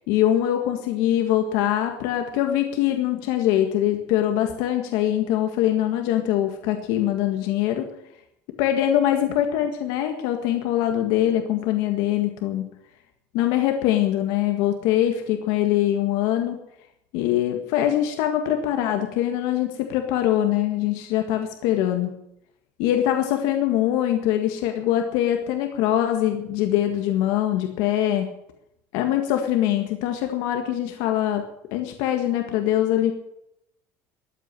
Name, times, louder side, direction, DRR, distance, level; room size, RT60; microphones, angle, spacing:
voice 1, 0.1-7.9 8.6-12.7 13.3-16.6 17.1-22.1 22.8-28.3 28.9-31.4 31.7-33.1, left 12 dB, 70° left, 5 dB, 1.7 m, -23 dB
13.5 x 8.7 x 9.8 m, 0.79 s
cardioid pair, 165°, 7 cm